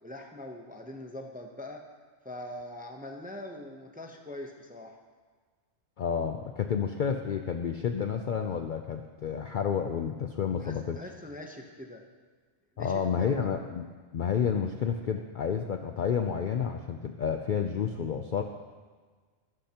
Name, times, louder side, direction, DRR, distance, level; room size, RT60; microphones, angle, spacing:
voice 1, 0.0-1.8 2.2-4.9 10.6-12.0 12.8-13.5, left 1 dB, 10° right, 2 dB, 0.5 m, -42 dB
voice 2, 6.0-11.0 12.8-18.4, left 7 dB, 60° left, 5 dB, 0.5 m, -30 dB
12.0 x 11.5 x 2.9 m, 1.5 s
omnidirectional pair, 1.3 m